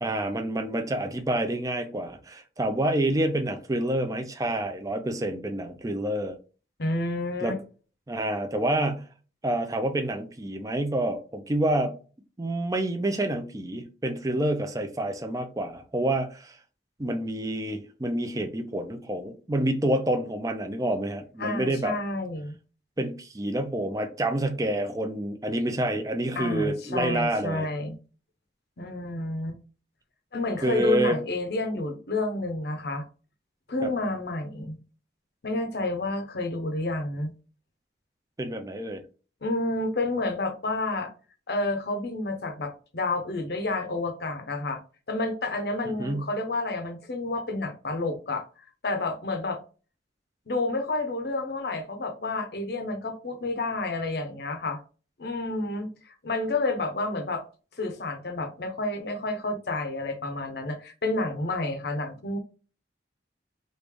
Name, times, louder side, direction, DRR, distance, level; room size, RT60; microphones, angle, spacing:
voice 1, 0.0-6.4 7.4-7.6 8.1-9.0 9.4-11.9 12.4-16.6 17.0-22.0 23.0-27.7 30.6-31.2 33.8-33.9 38.4-39.0 45.9-46.3, right 1 dB, 20° right, 0.5 m, -28 dB
voice 2, 6.8-7.6 21.4-22.6 26.4-28.0 28.8-29.6 30.3-33.1 33.7-34.8 35.4-37.3 39.4-41.1 41.5-44.8 45.1-49.6 50.5-54.8 55.2-57.4 57.8-62.4, left 2 dB, 65° left, 0.7 m, -30 dB
3.2 x 2.5 x 3.4 m
head